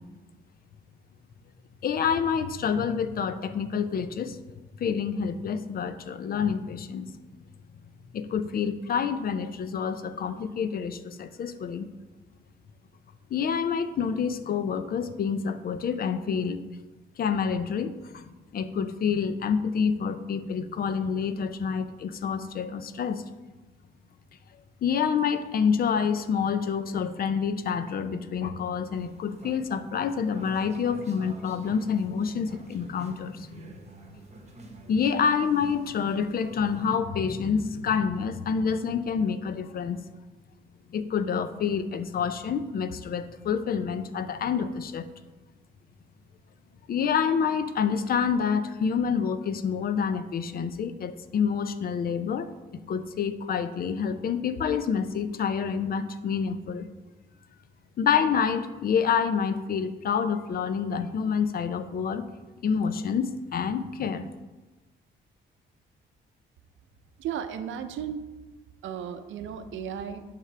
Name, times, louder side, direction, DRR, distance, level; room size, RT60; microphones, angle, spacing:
voice 1, 1.8-4.4 4.8-7.1 8.1-11.9 13.3-16.6 17.2-18.2 18.5-23.2 24.8-33.7 34.9-40.0 40.9-45.1 46.9-56.9 58.0-62.2 62.6-64.3, left 6 dB, 50° left, 12 dB, 0.5 m, -28 dB
sound 1, 28.9-37.0, right 3 dB, 35° right, 1.0 m, -49 dB
voice 2, 67.2-68.2 68.8-70.2, right 8 dB, 75° right, 9 dB, 0.6 m, -34 dB
11.0 x 3.7 x 3.3 m, 1.2 s
cardioid pair, 90°, 20 cm